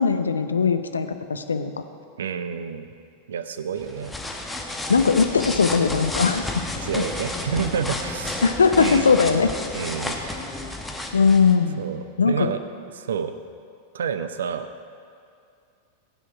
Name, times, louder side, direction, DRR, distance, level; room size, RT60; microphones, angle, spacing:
voice 1, 0.0-1.7 4.9-6.5 7.0-7.1 8.4-9.5 11.1-11.8 12.2-12.5, left 5 dB, 75° left, 9 dB, 0.6 m, -19 dB
voice 2, 2.2-2.9 3.3-4.1 6.8-8.4 8.8-9.2 9.7-10.2 11.8-12.6 12.9-13.3 13.9-14.7, right 7 dB, 65° right, 11 dB, 0.6 m, -29 dB
sound 1, 3.8-11.5, left 2 dB, 5° left, 1.1 m, -31 dB
15.5 x 9.2 x 4.7 m, 2.4 s
figure-of-eight pair, 90°, 0 cm